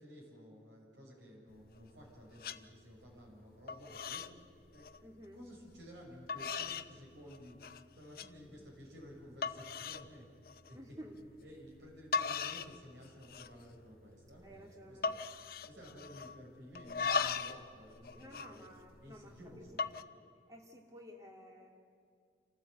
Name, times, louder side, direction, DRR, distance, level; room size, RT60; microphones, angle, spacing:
voice 1, 0.0-4.2 4.7-4.9 5.3-7.6 7.9-10.3 10.7-11.0 11.4-15.2 15.7-18.7 19.0-19.8, equal, 80° right, -2 dB, 6.4 m, -54 dB
sound 1, 1.5-2.1 2.4-2.6 3.0-3.4 3.7-4.3 4.6-5.0 5.7-5.8 6.3-6.9 7.3-7.8 8.2-8.3 8.8-8.9 9.4-10.1 10.5-10.7 11.8-11.9 12.1-12.8 13.1-13.6 13.9-14.0 14.3-14.6 15.0-16.4 16.8-17.6 17.9-19.2 19.7-20.0, left 5 dB, 50° left, 0.6 m, -38 dB
voice 2, 5.0-5.4 10.7-11.2 14.4-15.1 18.1-19.6 20.5-21.7, equal, 20° right, 1 dB, 2.4 m, -53 dB
27.5 x 14.5 x 8.0 m, 2.3 s
head